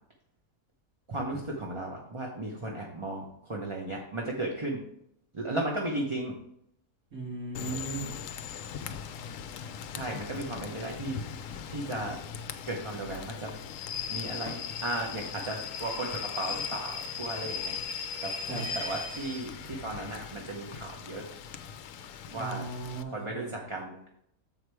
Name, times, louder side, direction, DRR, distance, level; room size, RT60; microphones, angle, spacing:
voice 1, 1.1-4.8 5.3-6.3 9.9-11.2 11.7-12.2 12.7-13.5 14.1-18.3 18.7-21.3 22.3-22.6 23.1-24.1, right 2 dB, 25° right, 0 dB, 0.8 m, -35 dB
voice 2, 7.1-8.1 18.4-18.6 22.3-23.5, right 3 dB, 65° right, -5 dB, 3.0 m, -37 dB
Rain / Train, 7.5-23.0, left 6 dB, 70° left, 0.9 m, -38 dB
7.2 x 4.9 x 4.7 m, 0.74 s
omnidirectional pair, 1.6 m